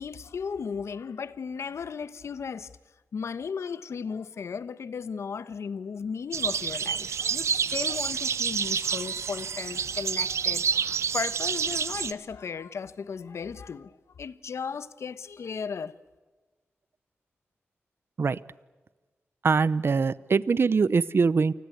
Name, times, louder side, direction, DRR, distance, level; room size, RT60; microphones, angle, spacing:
voice 1, 0.0-2.7 3.1-10.6 11.1-13.9 14.2-15.9, left 6 dB, 80° left, 1.1 m, -35 dB
sound 1, 6.3-12.1, right 6 dB, 85° right, 1.0 m, -28 dB
voice 2, 19.4-21.5, right 5 dB, 55° right, 0.8 m, -23 dB
28.5 x 20.0 x 8.1 m
cardioid pair, 65°, 5 cm